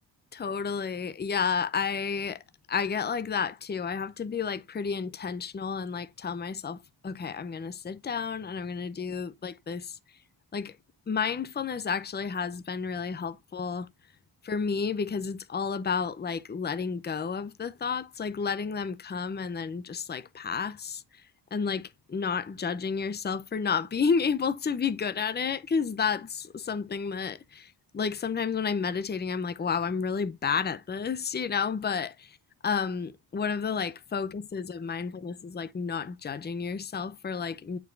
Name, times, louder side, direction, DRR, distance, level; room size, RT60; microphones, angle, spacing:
voice 1, 0.3-2.4 2.7-10.0 10.5-10.8 11.1-13.9 14.4-21.0 21.5-32.4 32.6-37.8, left 6 dB, 20° left, 0.6 m, -31 dB
8.6 x 4.7 x 2.5 m
wide cardioid pair, 105°, 46 cm